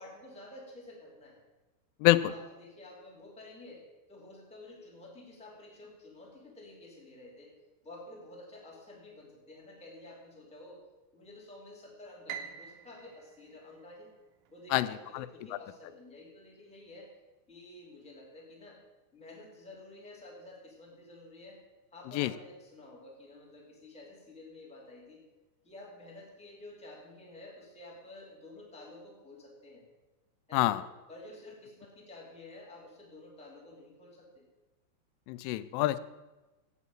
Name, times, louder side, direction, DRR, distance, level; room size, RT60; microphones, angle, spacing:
voice 1, 0.0-1.4 2.1-7.5 7.8-10.8 11.1-14.1 14.5-17.1 17.5-18.8 19.1-21.6 21.9-25.2 25.6-29.8 30.5-30.8 31.1-34.4, left 2 dB, 5° left, -3 dB, 0.7 m, -51 dB
voice 2, 2.0-2.3 14.7-14.9 15.1-15.3 22.2-22.3 30.5-30.8 35.3-36.0, left 17 dB, 85° left, 15 dB, 3.0 m, -26 dB
Piano, 12.3-14.5, right 8 dB, 90° right, 2.2 m, -45 dB
8.4 x 8.2 x 8.7 m, 1.1 s
omnidirectional pair, 5.5 m